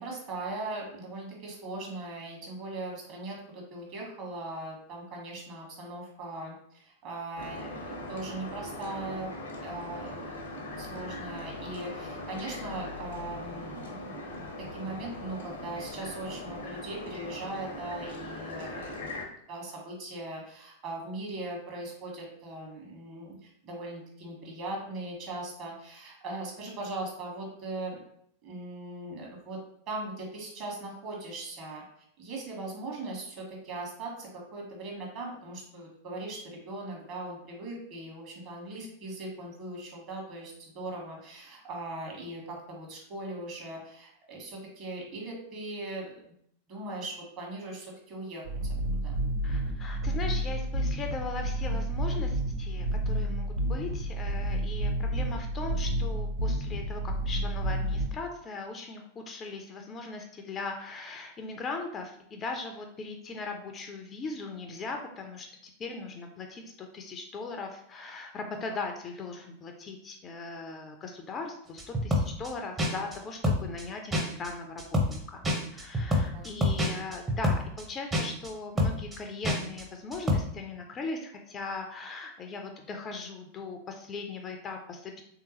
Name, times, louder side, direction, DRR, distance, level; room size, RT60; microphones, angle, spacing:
voice 1, 0.0-10.4 10.7-14.4 14.7-28.0 28.4-29.6 29.9-31.8 32.2-46.1 46.7-48.7 49.0-49.2 76.0-76.5, right 2 dB, 40° right, -1 dB, 1.3 m, -39 dB
sound 1, 7.4-19.3, left 1 dB, 65° left, 0.6 m, -40 dB
sound 2, 48.4-58.1, right 1 dB, 65° right, 0.5 m, -30 dB
voice 2, 49.4-85.2, left 3 dB, 25° left, 4 dB, 0.4 m, -39 dB
sound 3, 71.8-72.5 72.8-73.2 73.4-73.8 74.1-74.5 74.8-75.2 75.4-77.8 78.1-78.5 78.8-79.2 79.4-79.8 80.1-80.4, left 1 dB, 15° right, 0.7 m, -27 dB
3.4 x 2.8 x 2.9 m, 0.69 s
figure-of-eight pair, 90°, 0 cm